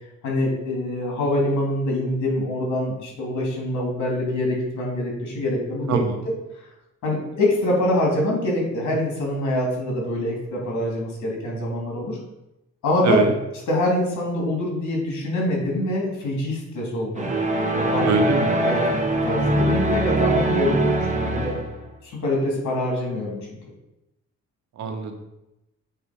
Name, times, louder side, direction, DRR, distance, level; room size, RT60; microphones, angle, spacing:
voice 1, 0.2-6.7 7.0-12.2 12.8-13.2 13.7-17.3 17.7-18.2 18.6-18.8 19.2-21.6 22.0-23.6, left 1 dB, 70° left, -2 dB, 3.0 m, -25 dB
voice 2, 5.9-6.2 13.0-13.3 18.0-18.5 24.8-25.2, right 4 dB, 65° right, 5 dB, 1.2 m, -23 dB
sound 1, 17.2-21.8, right 1 dB, 25° right, 1.4 m, -22 dB
8.0 x 4.2 x 5.3 m, 0.91 s
cardioid pair, 90°, 30 cm